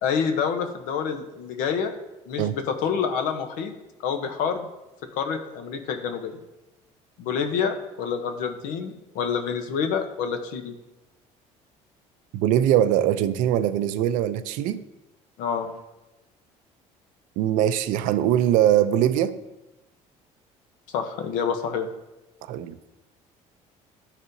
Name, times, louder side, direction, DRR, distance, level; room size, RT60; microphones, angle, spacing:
voice 1, 0.0-2.0 2.3-3.7 4.0-4.7 5.1-6.4 7.2-10.8 15.4-15.7 20.9-21.9, left 6 dB, 80° left, 7 dB, 0.8 m, -27 dB
voice 2, 12.3-14.8 17.4-19.3 22.5-22.8, right 11 dB, 75° right, 13 dB, 0.4 m, -22 dB
11.0 x 4.1 x 2.6 m, 1.0 s
cardioid pair, 120°, 14 cm